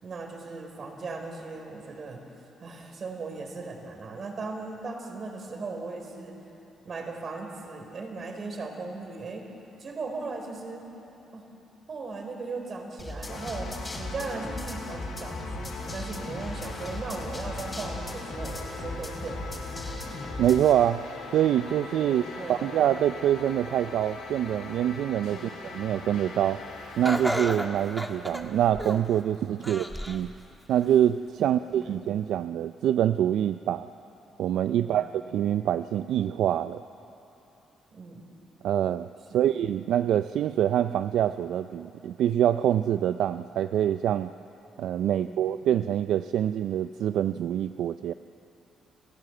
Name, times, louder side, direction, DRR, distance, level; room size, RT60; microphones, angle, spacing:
voice 1, 0.0-2.2 2.6-6.4 6.8-9.5 9.8-10.8 11.3-11.5 11.9-19.6 22.0-22.7 25.3-25.5 29.6-29.8 31.4-32.0 34.8-35.0 37.9-38.2 39.3-39.5 45.1-45.5, right 3 dB, 45° right, 3 dB, 4.2 m, -38 dB
sound 1, 13.0-20.7, left 1 dB, 15° left, 4.5 m, -38 dB
sound 2, 13.2-27.5, left 3 dB, 90° left, 3.6 m, -41 dB
voice 2, 20.4-21.0 21.3-22.2 22.5-26.6 27.0-30.3 30.7-33.9 34.4-36.8 38.6-39.1 39.3-44.3 44.8-48.1, right 11 dB, 80° right, 11 dB, 0.4 m, -25 dB
Laughter, 27.0-29.2 29.6-30.3 30.8-30.9 31.8-31.9, equal, ahead, 1.6 m, -32 dB
29.0 x 15.5 x 7.9 m, 2.9 s
cardioid pair, 90°, 0 cm